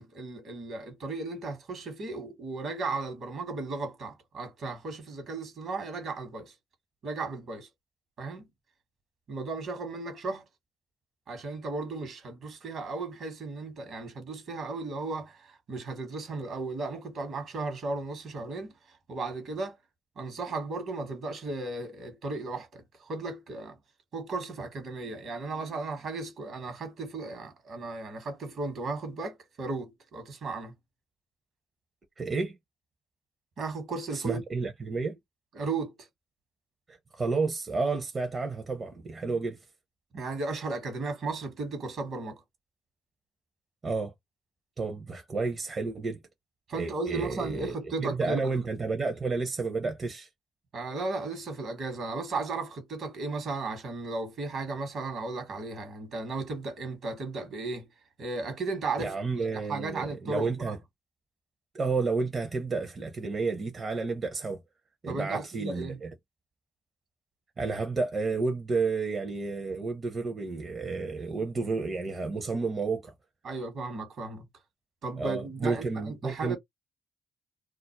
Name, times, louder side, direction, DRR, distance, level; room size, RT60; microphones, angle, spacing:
voice 1, 0.0-6.5 7.0-7.7 8.2-8.5 9.3-10.4 11.3-19.8 20.2-23.8 24.1-30.7 33.6-34.4 35.5-36.1 40.1-42.4 46.7-48.6 50.7-57.9 58.2-59.1 59.7-60.8 65.1-66.0 73.4-74.4 75.0-76.6, right 3 dB, 65° right, 1.1 m, -35 dB
voice 2, 32.2-32.6 34.1-35.2 36.9-39.6 43.8-44.1 44.8-46.2 46.7-47.7 48.0-50.3 59.0-60.8 61.7-64.6 65.0-66.1 67.6-73.1 75.2-76.6, right 4 dB, 40° right, 0.6 m, -31 dB
2.4 x 2.0 x 2.8 m
hypercardioid pair, 45°, 0 cm